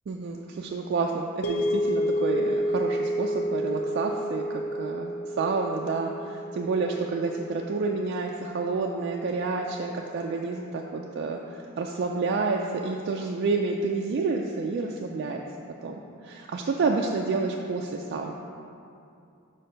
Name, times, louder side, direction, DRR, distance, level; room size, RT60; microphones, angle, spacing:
voice 1, 0.1-4.4 4.7-15.4 15.8-18.3, right 4 dB, 50° right, 0 dB, 0.3 m, -29 dB
sound 1, 1.4-9.7, equal, 85° left, 0.6 m, -30 dB
5.7 x 4.3 x 5.1 m, 2.6 s
head